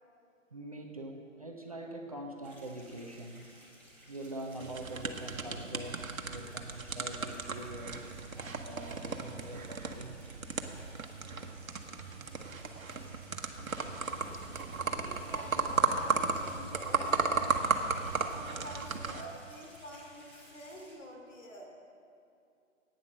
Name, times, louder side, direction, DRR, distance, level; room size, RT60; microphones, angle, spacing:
voice 1, 0.5-3.6 4.1-10.4, right 1 dB, 30° right, 2 dB, 0.5 m, -44 dB
sound 1, 2.4-20.9, equal, 5° left, 1.9 m, -57 dB
sound 2, 4.6-19.2, right 4 dB, 90° right, 1.1 m, -35 dB
voice 2, 14.8-17.3 18.3-21.7, left 1 dB, 65° left, 0 dB, 2.8 m, -48 dB
10.5 x 9.0 x 6.4 m, 2.6 s
hypercardioid pair, 155°, 40 cm